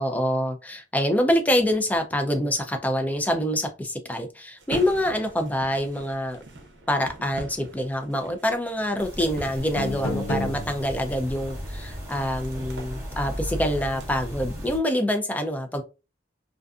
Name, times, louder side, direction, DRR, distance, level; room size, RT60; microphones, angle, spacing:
voice 1, 0.0-6.4 6.9-15.8, equal, 10° left, 0.4 m, -26 dB
sound 1, 4.6-14.2, right 2 dB, 75° right, 0.6 m, -44 dB
sound 2, 9.0-14.8, equal, 15° right, 0.9 m, -36 dB
sound 3, 9.2-9.4 9.8-11.3, left 2 dB, 80° left, 0.6 m, -31 dB
2.4 x 2.4 x 2.3 m
head